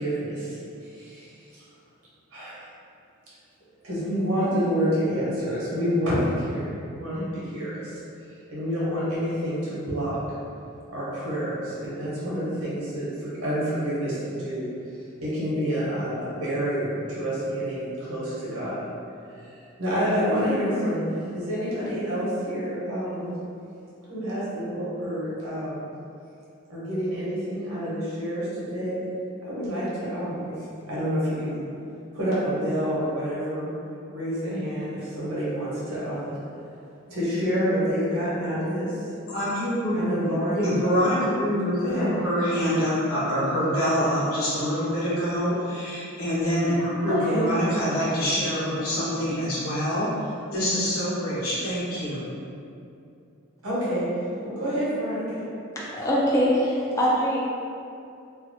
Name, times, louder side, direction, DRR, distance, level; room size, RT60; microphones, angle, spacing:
voice 1, 0.0-1.7 2.3-2.6 3.8-8.0 8.5-10.2 10.9-14.7 15.2-18.8 19.4-19.5 19.8-21.0 21.3-23.3 24.1-25.9 26.7-29.0 29.4-31.6 32.1-33.7 34.1-36.4 37.1-39.0 39.9-40.8 41.7-42.3 47.1-47.4 53.6-54.1 54.4-55.5, equal, 90° right, -9 dB, 1.0 m, -28 dB
voice 2, 39.3-40.0 40.5-50.1 50.5-52.2, equal, 85° left, -9 dB, 1.0 m, -25 dB
voice 3, 55.8-57.4, equal, 15° left, -6 dB, 0.4 m, -23 dB
2.7 x 2.3 x 2.6 m, 2.6 s
head